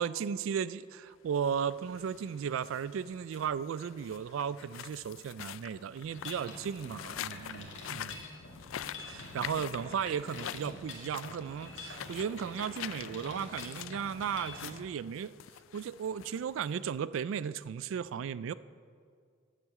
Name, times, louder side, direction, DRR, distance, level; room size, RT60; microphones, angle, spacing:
voice 1, 0.0-8.2 9.0-15.3 15.7-18.5, right 7 dB, 80° right, 17 dB, 0.3 m, -35 dB
sound 1, 1.2-16.9, left 11 dB, 85° left, 0.3 m, -46 dB
Mechanisms, 6.1-14.8, left 2 dB, 65° left, 2.2 m, -46 dB
10.0 x 8.4 x 7.4 m, 2.1 s
head